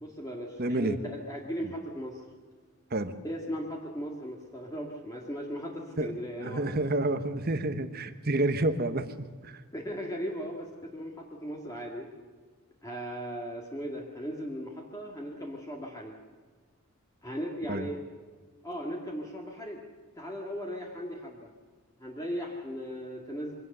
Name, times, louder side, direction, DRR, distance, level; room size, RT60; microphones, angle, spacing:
voice 1, 0.0-2.2 3.2-6.6 9.7-12.1 12.8-16.1 17.2-18.0 18.6-19.8 20.2-21.5 22.0-23.5, equal, 15° left, -1 dB, 2.1 m, -37 dB
voice 2, 0.6-1.0 2.9-3.1 6.0-9.1 9.4-9.6 17.7-17.9, right 2 dB, 45° right, 10 dB, 1.1 m, -29 dB
23.5 x 17.5 x 6.8 m, 1.5 s
head